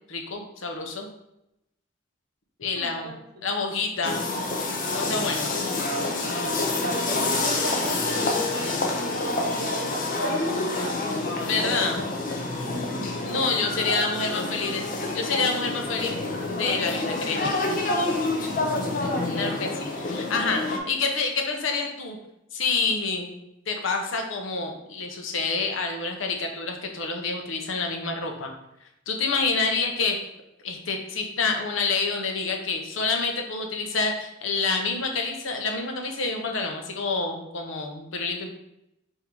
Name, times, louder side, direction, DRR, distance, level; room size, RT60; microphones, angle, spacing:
voice 1, 0.1-1.1 2.6-3.1 3.4-4.2 4.9-5.5 11.4-12.0 13.2-14.9 15.1-16.2 16.6-17.5 19.4-22.2 22.5-23.4 23.7-28.5 29.1-30.2 30.6-38.5, left 4 dB, 80° left, 3 dB, 0.7 m, -28 dB
voice 2, 2.7-3.4 6.8-11.1 12.6-14.8 18.8-19.6, right 1 dB, 55° right, 2 dB, 0.7 m, -36 dB
sound 1, 4.0-20.8, left 2 dB, 45° left, 0.5 m, -28 dB
3.6 x 2.7 x 4.4 m, 0.85 s
head